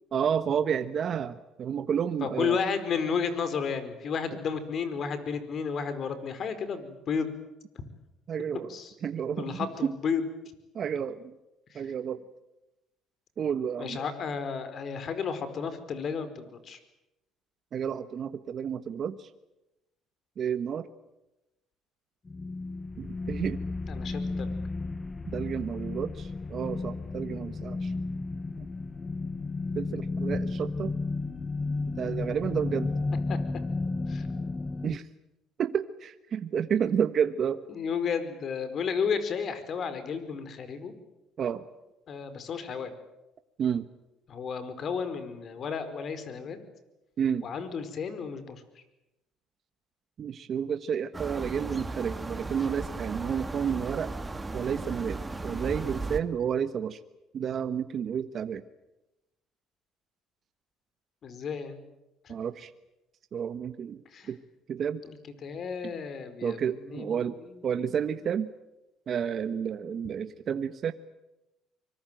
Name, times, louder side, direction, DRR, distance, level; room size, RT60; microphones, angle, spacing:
voice 1, 0.1-2.6 8.3-8.7 9.0-9.9 10.7-11.3 11.7-12.2 13.4-14.0 17.7-19.3 20.4-20.9 23.0-23.6 25.3-27.9 29.7-30.9 32.0-32.9 34.8-35.1 35.6-37.6 41.4-41.6 43.6-43.9 47.2-47.5 50.2-54.1 54.5-57.0 57.3-58.6 62.3-62.7 63.3-64.0 64.3-64.4 64.7-65.0 66.4-67.4 67.6-68.5 69.1-70.9, right 8 dB, 50° right, 10 dB, 1.2 m, -30 dB
voice 2, 2.2-7.3 8.7-8.9 9.4-10.2 11.7-11.9 13.8-16.8 23.9-24.6 30.3-30.4 33.3-33.4 34.1-34.3 37.7-40.9 42.1-42.9 44.3-46.6 47.4-48.6 61.2-61.8 62.2-62.3 64.1-64.3 65.0-68.2, left 6 dB, 55° left, 11 dB, 4.8 m, -33 dB
sound 1, 22.3-35.0, left 3 dB, 25° left, 1.0 m, -33 dB
sound 2, 51.1-56.2, right 3 dB, 20° right, 2.2 m, -36 dB
25.0 x 23.5 x 9.1 m, 0.95 s
supercardioid pair, 80°, 0 cm